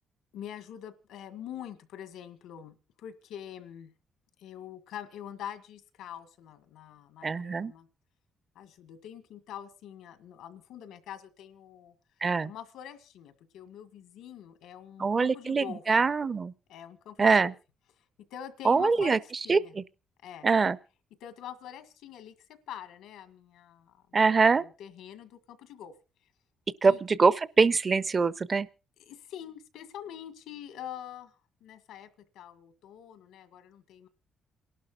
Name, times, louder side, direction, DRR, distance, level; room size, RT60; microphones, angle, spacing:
voice 1, 0.3-3.9 4.4-7.9 8.5-11.9 12.4-16.1 16.7-17.5 18.3-19.7 20.2-20.5 21.2-22.3 22.7-25.9 26.8-27.0 29.0-31.3 31.6-34.1, left 10 dB, 90° left, 1.7 m, -45 dB
voice 2, 7.2-7.7 12.2-12.5 15.0-16.5 17.2-17.5 18.6-19.2 19.5-19.8 20.4-20.8 24.1-24.6 26.8-28.7, right 4 dB, 35° right, 0.7 m, -24 dB
28.0 x 12.0 x 2.4 m
cardioid pair, 90°, 0 cm